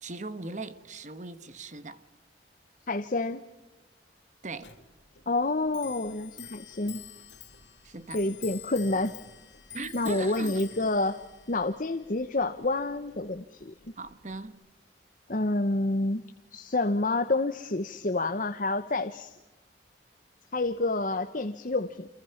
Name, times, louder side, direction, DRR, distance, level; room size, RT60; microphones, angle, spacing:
voice 1, 0.0-2.0 4.4-4.7 7.8-8.2 9.7-10.6 14.0-14.6, right 3 dB, 40° right, 1.2 m, -39 dB
voice 2, 2.9-3.4 5.3-7.0 8.1-9.2 9.9-11.2 11.5-13.7 15.3-16.2 16.5-19.3 20.5-22.1, left 2 dB, 45° left, 0.9 m, -28 dB
Clock, 4.6-14.5, left 10 dB, 75° left, 2.5 m, -48 dB
30.0 x 27.0 x 5.8 m
head